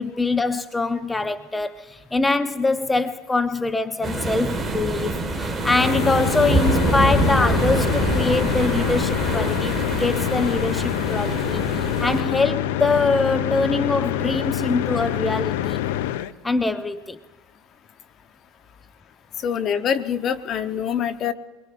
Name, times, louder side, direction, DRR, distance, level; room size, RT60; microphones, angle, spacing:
voice 1, 0.0-9.7 10.0-15.8 16.4-17.2, left 3 dB, 15° left, 0.6 m, -23 dB
sound 1, 4.0-12.2, right 2 dB, 15° right, 1.7 m, -25 dB
sound 2, 5.6-16.3, left 12 dB, 75° left, 0.5 m, -26 dB
voice 2, 19.4-21.3, left 8 dB, 45° left, 0.8 m, -24 dB
23.0 x 21.5 x 2.5 m
hypercardioid pair, 85°, 0 cm